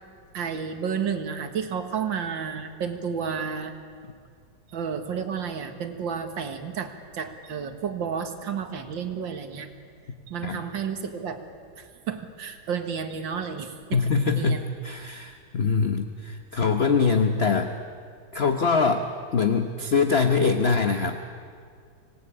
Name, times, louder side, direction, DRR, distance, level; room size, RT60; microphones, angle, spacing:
voice 1, 0.3-3.7 4.7-9.7 10.3-11.4 11.8-14.0 14.3-14.6, right 6 dB, 80° right, 7 dB, 2.2 m, -31 dB
voice 2, 13.9-17.7 18.3-21.2, left 5 dB, 40° left, 6 dB, 1.0 m, -23 dB
26.0 x 19.0 x 8.7 m, 2.1 s
omnidirectional pair, 2.0 m